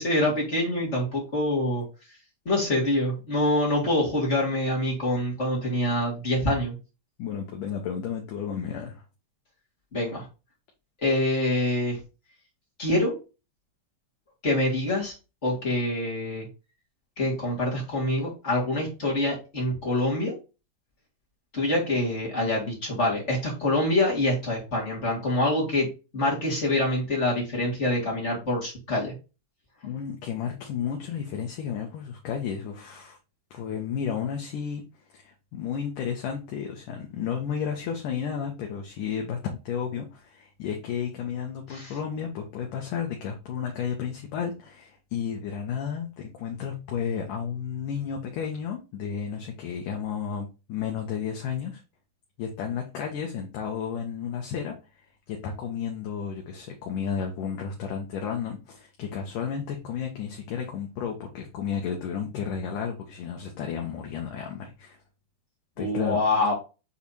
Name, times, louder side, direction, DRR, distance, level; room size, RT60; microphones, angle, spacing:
voice 1, 0.0-1.8 2.4-6.7 9.9-10.2 11.0-12.0 12.8-13.1 14.4-15.1 15.4-16.5 17.2-20.3 21.5-25.9 26.1-29.1 41.7-41.9 65.8-66.5, left 1 dB, 25° left, -3 dB, 1.7 m, -25 dB
voice 2, 7.2-9.0 29.8-33.2 33.5-34.8 35.1-51.8 52.4-54.8 55.3-65.0 65.8-66.2, left 7 dB, 70° left, 2 dB, 2.2 m, -32 dB
7.2 x 3.3 x 4.2 m, 0.30 s
omnidirectional pair, 4.8 m